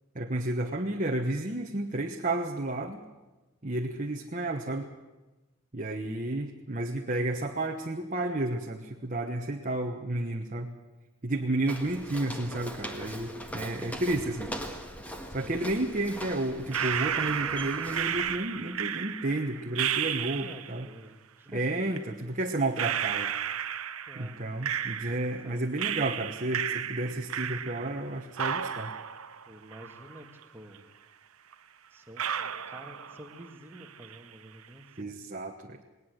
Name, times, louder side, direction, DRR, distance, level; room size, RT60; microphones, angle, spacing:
voice 1, 0.1-3.0 3.6-4.9 5.7-10.7 11.2-14.5 15.3-20.9 21.5-23.3 24.1-28.9 35.0-35.8, right 2 dB, 35° right, 2 dB, 1.2 m, -31 dB
Walk footsteps, 11.7-18.4, equal, 5° left, 1.7 m, -41 dB
sound 1, 16.7-20.8 21.9-22.0 22.8-25.5 25.8-28.1 28.4-30.4 30.7-30.8 31.5-31.6 32.2-33.5 33.8-34.3, right 9 dB, 75° right, 1.0 m, -33 dB
voice 2, 20.2-21.6 24.1-24.4 25.4-25.7 29.5-30.3 30.5-30.8 31.9-35.2, equal, 10° right, 4 dB, 1.9 m, -49 dB
19.5 x 19.0 x 8.0 m, 1.1 s
head